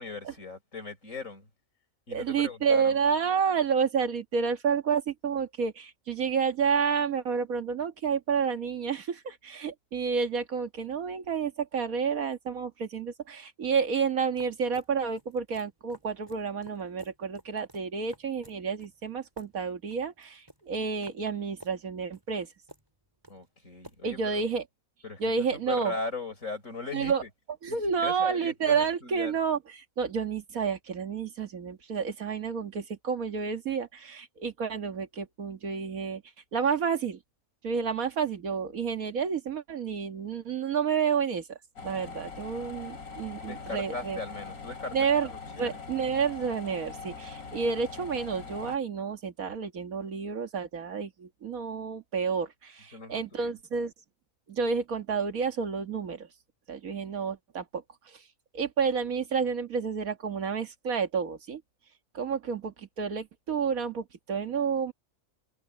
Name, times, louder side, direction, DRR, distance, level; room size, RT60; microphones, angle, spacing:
voice 1, 0.0-1.5 2.1-3.0 23.3-24.4 25.0-27.3 27.7-29.3 43.4-45.0 45.2-45.8 52.9-53.5, left 3 dB, 60° left, 5.7 m, -39 dB
voice 2, 2.1-22.5 24.0-24.6 25.2-25.9 26.9-27.2 27.6-36.2 36.5-37.2 37.6-44.2 44.9-45.3 45.6-53.9 54.5-56.3 56.7-58.2 58.5-61.6 62.1-64.9, right 6 dB, 75° right, 2.1 m, -30 dB
sound 1, 14.0-24.6, right 1 dB, 15° right, 3.8 m, -53 dB
sound 2, 41.8-48.8, left 5 dB, 90° left, 3.4 m, -42 dB
omnidirectional pair, 1.5 m